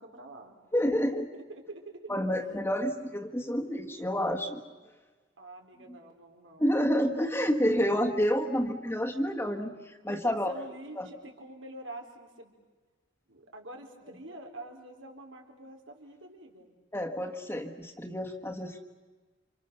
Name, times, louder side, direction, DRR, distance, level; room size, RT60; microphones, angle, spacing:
voice 1, 0.0-0.6 1.2-2.4 5.4-6.7 10.1-12.6 13.3-16.7, right 1 dB, 80° right, 2 dB, 4.2 m, -46 dB
voice 2, 0.7-1.3 2.1-4.6 6.6-10.5 11.0-11.1 16.9-18.8, equal, 10° left, 3 dB, 1.6 m, -29 dB
29.0 x 26.5 x 6.9 m, 1.3 s
head